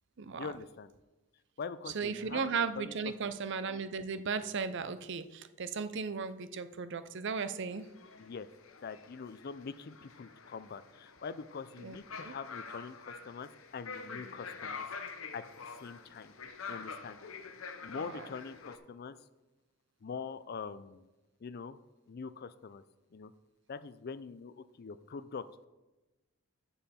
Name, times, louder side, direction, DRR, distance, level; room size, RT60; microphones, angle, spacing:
voice 1, 0.4-0.9 1.6-2.9 8.2-8.5 8.8-14.8 15.3-15.4 15.8-16.3 16.7-17.2 17.8-19.2 20.0-21.0 21.4-21.8 22.1-22.8 23.1-23.3 23.7-25.4, left 5 dB, 50° left, 14 dB, 0.4 m, -43 dB
voice 2, 1.9-7.9 11.8-12.0 12.2-12.3 18.0-18.3, right 5 dB, 60° right, 12 dB, 0.6 m, -36 dB
sound 1, 7.7-18.8, left 5 dB, 85° left, 0.9 m, -46 dB
14.0 x 5.5 x 4.3 m, 1.1 s
head